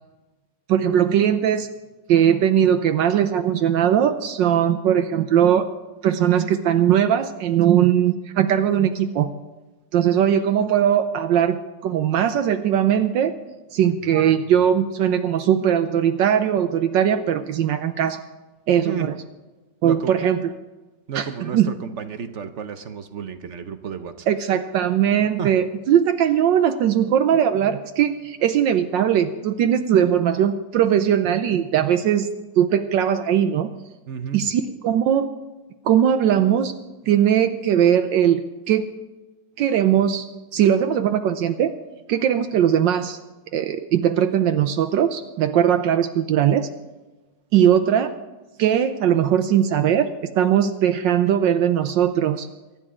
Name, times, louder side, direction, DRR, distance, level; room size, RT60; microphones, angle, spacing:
voice 1, 0.7-1.7 2.1-5.7 6.0-9.3 9.9-13.3 13.7-18.2 18.7-19.1 19.8-20.4 21.1-21.7 24.3-32.3 32.5-33.7 34.3-35.3 35.8-36.7 37.1-38.8 39.6-40.3 40.5-41.7 42.1-43.2 43.5-46.7 47.5-48.1 48.6-50.1 50.3-52.5, right 9 dB, 75° right, 8 dB, 1.3 m, -19 dB
voice 2, 13.8-14.5 18.8-19.1 19.8-20.1 21.1-24.3 25.4-25.5 34.1-34.5, right 7 dB, 60° right, 9 dB, 0.7 m, -32 dB
23.5 x 11.0 x 3.7 m, 1.1 s
omnidirectional pair, 2.1 m